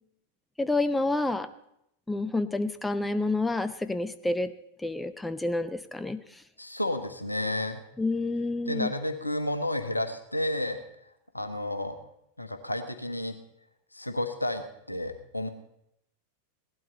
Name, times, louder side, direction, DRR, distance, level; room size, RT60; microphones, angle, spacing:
voice 1, 0.6-1.5 2.1-4.5 4.8-6.2 8.0-8.9, left 2 dB, 5° left, 12 dB, 0.6 m, -28 dB
voice 2, 6.6-7.8 8.7-10.8 11.3-12.0 12.4-13.4 13.9-15.5, left 1 dB, 85° left, 7 dB, 1.1 m, -31 dB
17.0 x 12.0 x 4.1 m, 0.78 s
figure-of-eight pair, 90°, 0 cm